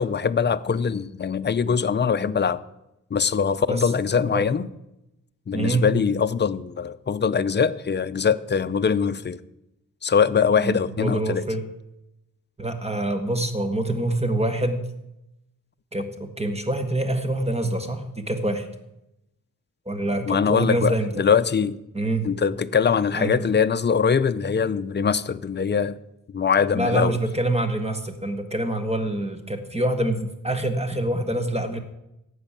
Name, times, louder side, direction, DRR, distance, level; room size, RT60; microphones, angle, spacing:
voice 1, 0.0-2.6 3.1-4.7 5.5-9.4 10.0-11.5 20.2-21.8 22.2-26.0 26.3-27.2, left 6 dB, 30° left, 0.5 m, -22 dB
voice 2, 5.5-5.9 10.6-11.6 12.6-14.8 15.9-18.7 19.8-21.1 21.9-22.3 23.1-23.4 26.7-31.8, right 1 dB, 20° right, 1.5 m, -25 dB
12.0 x 8.2 x 7.4 m
wide cardioid pair, 135°, 34 cm